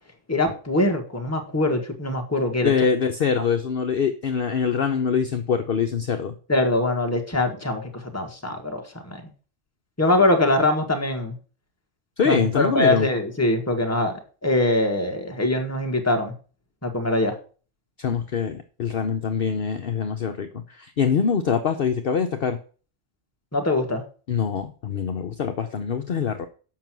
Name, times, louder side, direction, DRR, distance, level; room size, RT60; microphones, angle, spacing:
voice 1, 0.3-2.7 6.5-9.3 10.0-11.4 12.2-16.3 16.8-17.4 23.5-24.0, left 2 dB, 15° left, 2 dB, 1.4 m, -23 dB
voice 2, 2.6-6.3 12.2-13.1 18.0-22.6 24.3-26.5, left 6 dB, 55° left, 6 dB, 0.8 m, -24 dB
7.4 x 5.8 x 6.1 m, 0.39 s
omnidirectional pair, 1.3 m